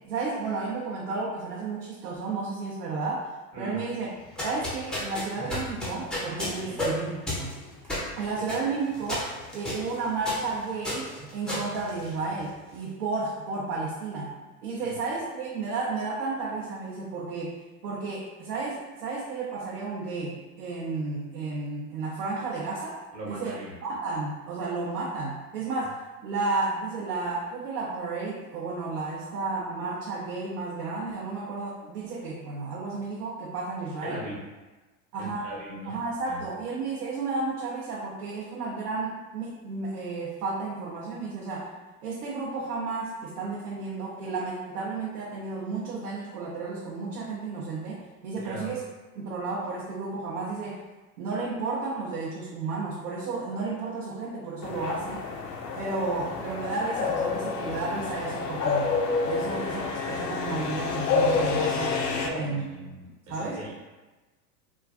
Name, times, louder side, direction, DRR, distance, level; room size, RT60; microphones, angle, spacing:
voice 1, 0.1-3.3 3.6-4.1 4.4-7.6 8.2-14.3 14.6-17.5 17.8-23.0 23.3-26.0 26.2-34.2 35.1-35.5 35.9-41.7 42.0-48.8 49.1-50.8 51.2-55.2 55.8-58.9 59.2-62.0 62.3-62.6 63.3-63.7, right 3 dB, 70° right, -5 dB, 0.7 m, -32 dB
sound 1, 4.2-12.6, left 1 dB, ahead, 0.4 m, -34 dB
voice 2, 23.1-23.7 34.0-34.4 35.1-36.0 36.3-36.4 48.3-48.7 62.2-63.7, right 1 dB, 45° right, -4 dB, 1.1 m, -39 dB
sound 2, 54.6-62.3, left 5 dB, 85° left, 0.6 m, -28 dB
3.1 x 2.3 x 2.4 m, 1.2 s
hypercardioid pair, 95°, 48 cm